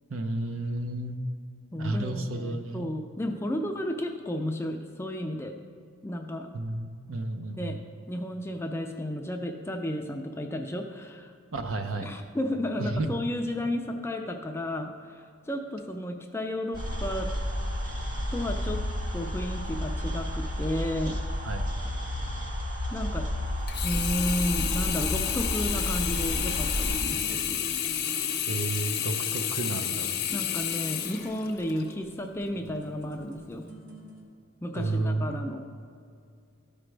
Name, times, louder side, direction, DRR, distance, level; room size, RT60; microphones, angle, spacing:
voice 1, 0.1-1.2 1.8-2.9 6.5-7.8 11.5-12.1 12.8-13.2 21.4-21.7 28.5-30.1 34.7-35.4, right 2 dB, 65° right, 6 dB, 0.7 m, -32 dB
voice 2, 1.7-5.6 6.0-6.5 7.5-7.8 8.1-11.3 12.0-17.3 18.3-18.8 19.1-21.2 22.9-23.3 23.8-27.6 30.3-33.7 34.6-35.6, left 1 dB, 10° left, 4 dB, 0.4 m, -33 dB
sound 1, 16.7-27.0, equal, 40° right, 2.0 m, -31 dB
Sink (filling or washing), 23.7-31.9 32.5-32.6, left 9 dB, 45° left, 0.7 m, -30 dB
sound 2, 26.0-34.2, right 1 dB, 85° right, 1.6 m, -50 dB
13.5 x 5.0 x 3.3 m, 2.3 s
head